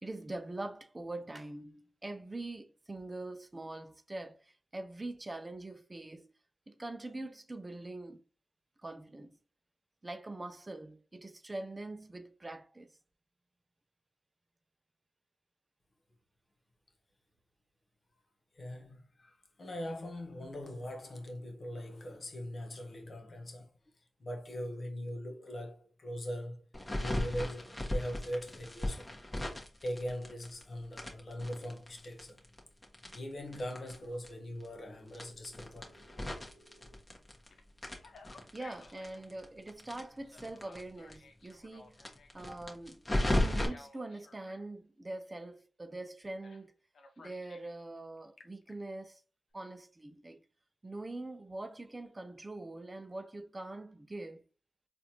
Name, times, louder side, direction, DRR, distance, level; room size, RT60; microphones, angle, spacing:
voice 1, 0.0-6.2 6.7-8.2 8.8-9.4 10.0-12.9 38.5-42.0 42.3-46.7 47.2-49.2 49.5-50.4 50.8-54.4, right 2 dB, 25° right, 0.5 m, -43 dB
voice 2, 18.6-23.7 24.2-26.6 27.0-29.1 29.8-32.4 33.1-36.0, equal, 55° left, 1.1 m, -41 dB
sound 1, 26.7-30.6 30.9-34.0 34.2-34.3 34.6-34.7 35.1-37.5 37.8-40.8 41.1-41.2 41.5-41.6 41.9-43.7, left 1 dB, 20° left, 1.2 m, -35 dB
Telephone, 34.7-37.0 37.5-39.3 40.2-42.5 43.3-44.6 46.4-46.6 46.9-47.7 48.2-48.7, left 3 dB, 75° left, 0.8 m, -57 dB
4.0 x 2.5 x 2.9 m
cardioid pair, 55°, 0 cm